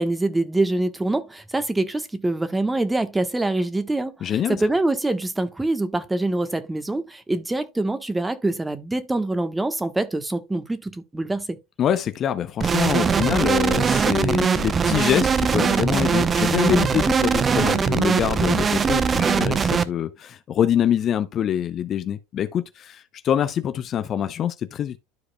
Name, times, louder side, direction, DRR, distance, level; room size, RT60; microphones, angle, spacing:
voice 1, 0.0-11.6, right 2 dB, 10° right, 1.2 m, -25 dB
voice 2, 4.2-4.6 11.8-25.0, left 9 dB, 40° left, 0.6 m, -25 dB
sound 1, 12.6-19.8, right 6 dB, 30° right, 0.7 m, -21 dB
12.5 x 4.7 x 2.2 m
hypercardioid pair, 75°, 0 cm